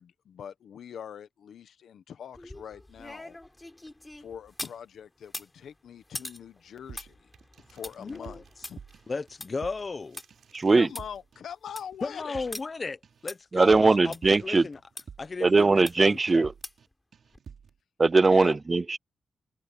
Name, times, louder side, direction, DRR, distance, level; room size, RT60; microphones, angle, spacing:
voice 1, 0.0-3.4 4.2-7.2 7.7-8.8 10.7-12.4 18.3-18.6, left 8 dB, 85° left, 1.4 m, -43 dB
sound 1, 2.3-4.8 5.2-10.3 10.6-10.7 10.9-11.0 11.5-11.9 12.5-12.6 13.3-13.4 14.1-14.2 15.0-15.1 15.9-16.2 16.6-16.9 17.3-17.4, left 1 dB, 10° left, 5.4 m, -43 dB
sound 2, 6.9-7.8 8.1-10.0 10.3-10.6 10.9-11.4 11.7-15.5 15.8-16.1 16.4-16.9 17.1-17.8, right 6 dB, 55° right, 3.9 m, -49 dB
sound 3, 7.3-9.1 9.7-10.7, right 8 dB, 75° right, 7.8 m, -62 dB
voice 2, 8.0-8.4 9.1-10.2 12.0-14.8 15.2-16.5, left 4 dB, 30° left, 1.1 m, -35 dB
voice 3, 10.5-10.9 13.5-14.6 15.4-16.5 18.0-19.0, right 3 dB, 25° right, 0.4 m, -20 dB
wide cardioid pair, 180°, 0 cm